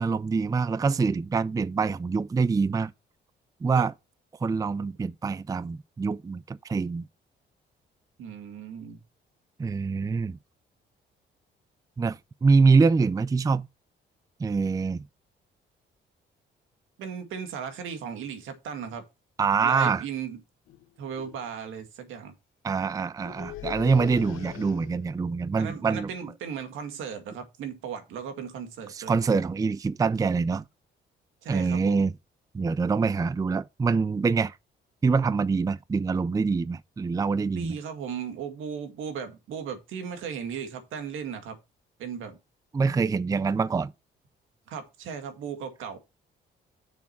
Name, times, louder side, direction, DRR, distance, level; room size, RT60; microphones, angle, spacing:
voice 1, 0.0-2.9 3.6-3.9 4.4-7.0 9.6-10.4 12.0-13.7 14.4-15.1 19.4-20.0 22.6-26.1 28.9-30.6 31.5-32.1 32.5-34.6 35.0-37.8 42.7-43.9, right 4 dB, 15° right, 0.4 m, -25 dB
voice 2, 8.2-9.0 17.0-19.1 19.6-20.4 21.0-22.3 25.6-29.1 31.4-32.1 37.5-41.6 42.0-42.4 44.7-46.0, right 7 dB, 85° right, 2.0 m, -36 dB
sound 1, 20.7-20.8 21.1-21.5 23.2-25.2, left 14 dB, 85° left, 0.9 m, -40 dB
7.2 x 6.3 x 4.5 m
cardioid pair, 90°, 20 cm